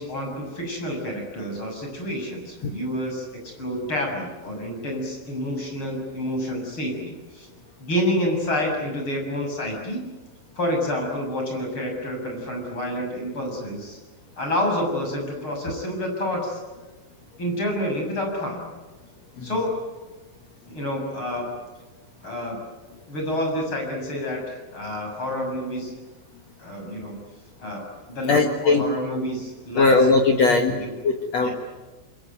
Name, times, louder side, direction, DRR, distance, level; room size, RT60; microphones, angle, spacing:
voice 1, 0.0-7.5 7.8-10.1 10.6-14.0 14.4-16.6 17.4-18.7 19.4-19.7 20.7-21.5 22.2-22.6 23.1-25.9 26.6-27.2 27.6-30.1 30.5-30.9 31.4-31.5, left 1 dB, 25° left, 2 dB, 7.4 m, -28 dB
voice 2, 28.3-28.8 29.7-31.5, left 3 dB, 75° left, 4 dB, 1.5 m, -19 dB
28.0 x 22.0 x 9.3 m, 1.2 s
omnidirectional pair, 5.7 m